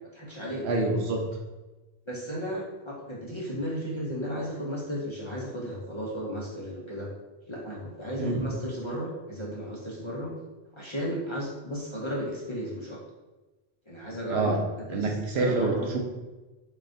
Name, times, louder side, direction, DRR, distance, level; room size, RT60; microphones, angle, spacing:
voice 1, 0.1-0.7 2.1-7.1 7.5-10.3 10.7-13.0 13.9-15.9, equal, 30° left, -5 dB, 0.6 m, -34 dB
voice 2, 0.6-1.3 8.2-8.5 14.3-14.6 14.9-16.0, right 3 dB, 75° right, 1 dB, 0.9 m, -26 dB
3.8 x 3.5 x 2.6 m, 1.1 s
omnidirectional pair, 1.1 m